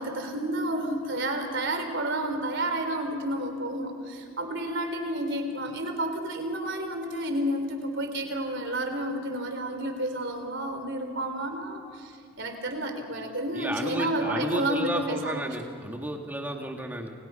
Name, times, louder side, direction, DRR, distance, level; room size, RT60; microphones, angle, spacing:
voice 1, 0.0-15.6, right 1 dB, 55° right, 6 dB, 3.9 m, -30 dB
voice 2, 13.5-17.1, right 1 dB, 10° right, 2 dB, 2.4 m, -32 dB
30.0 x 29.0 x 5.8 m, 2.3 s
head